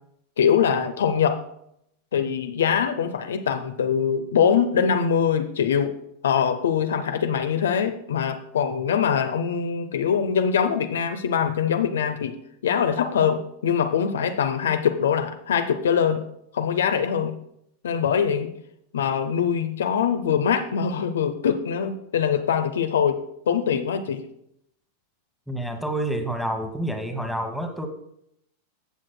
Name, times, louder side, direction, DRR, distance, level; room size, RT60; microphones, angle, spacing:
voice 1, 0.4-1.4 2.1-5.9 6.2-12.3 12.6-16.2 16.5-17.4 17.8-18.5 18.9-23.2 23.5-24.2, left 7 dB, 65° left, 7 dB, 0.7 m, -23 dB
voice 2, 25.5-27.9, right 1 dB, ahead, 6 dB, 1.2 m, -28 dB
15.0 x 7.4 x 2.2 m, 0.74 s
figure-of-eight pair, 90°, 0 cm